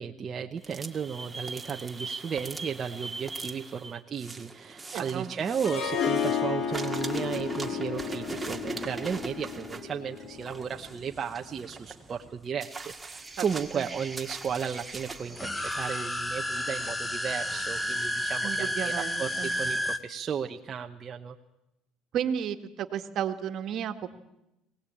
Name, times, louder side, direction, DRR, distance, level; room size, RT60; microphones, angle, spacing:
voice 1, 0.0-21.4, right 7 dB, 35° right, 3 dB, 1.0 m, -34 dB
sound 1, 0.6-6.4 6.7-15.9, right 3 dB, 15° right, 2.0 m, -41 dB
voice 2, 4.9-5.3 13.4-13.5 13.7-13.9 18.4-19.5 22.1-24.1, right 9 dB, 55° right, 7 dB, 1.8 m, -33 dB
Harp, 5.6-10.7, left 7 dB, 50° left, 3.2 m, -32 dB
sound 2, 15.3-20.0, left 1 dB, 10° left, 1.2 m, -31 dB
23.0 x 18.5 x 8.7 m, 0.89 s
cardioid pair, 115°, 0 cm